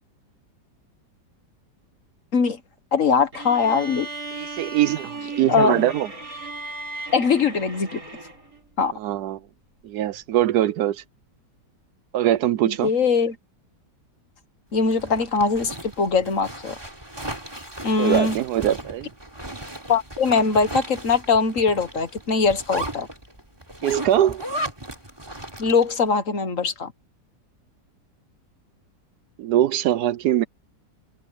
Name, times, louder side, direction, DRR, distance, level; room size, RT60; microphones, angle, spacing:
voice 1, 2.9-4.1 5.5-5.8 7.1-8.0 8.8-8.9 12.6-13.4 14.7-16.7 17.8-18.4 19.9-23.1 25.6-26.9, left 5 dB, 50° left, 1.6 m, -21 dB
sound 1, 3.3-8.6, right 3 dB, 55° right, 6.7 m, -36 dB
voice 2, 4.3-6.1 9.0-9.4 9.8-11.0 12.1-12.9 18.0-19.1 23.8-24.4 29.4-30.4, right 12 dB, 75° right, 1.1 m, -22 dB
Zipper (clothing), 14.8-26.0, right 1 dB, 15° right, 3.1 m, -36 dB
omnidirectional pair, 1.9 m